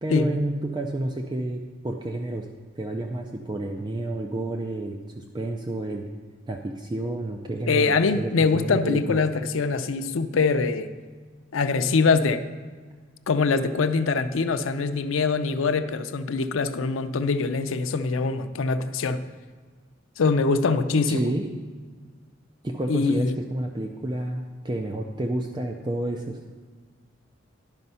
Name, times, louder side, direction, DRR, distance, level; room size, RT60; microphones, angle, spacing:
voice 1, 0.0-2.5 2.8-6.1 6.5-9.2 21.1-21.4 22.6-26.4, right 1 dB, 20° right, 3 dB, 0.4 m, -30 dB
voice 2, 7.7-10.9 11.5-12.4 13.3-19.3 20.2-21.3 22.9-23.3, left 4 dB, 80° left, 10 dB, 0.5 m, -23 dB
11.0 x 5.3 x 5.5 m, 1.5 s
head